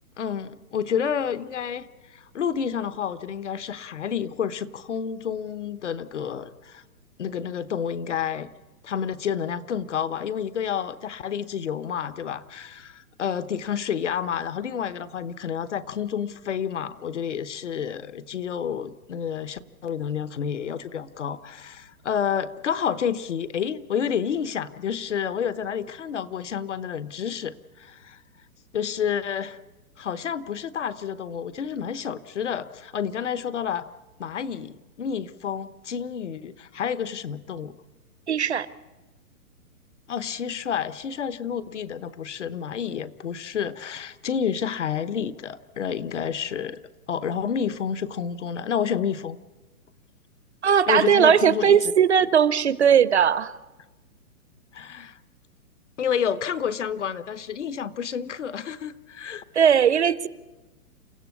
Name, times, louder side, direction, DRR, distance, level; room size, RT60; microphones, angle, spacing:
voice 1, 0.2-1.9 2.1-6.8 7.2-8.5 8.8-28.2 28.7-29.6 30.0-33.9 34.2-37.7 40.1-46.8 47.1-49.4 50.9-51.8 54.7-55.2 56.0-59.4, left 8 dB, 50° left, 14 dB, 1.1 m, -29 dB
voice 2, 38.3-38.7 50.6-53.5 59.5-60.3, right 8 dB, 50° right, 17 dB, 0.7 m, -19 dB
29.0 x 15.5 x 8.4 m, 1.2 s
hypercardioid pair, 180°, 44 cm